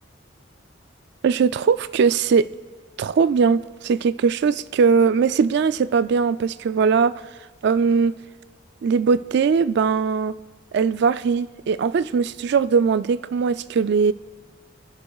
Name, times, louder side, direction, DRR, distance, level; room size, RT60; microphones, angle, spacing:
voice 1, 1.2-2.5 3.0-7.1 7.6-8.1 8.8-10.3 10.7-14.1, right 5 dB, 55° right, 14 dB, 0.3 m, -20 dB
24.0 x 11.0 x 2.4 m, 1.4 s
head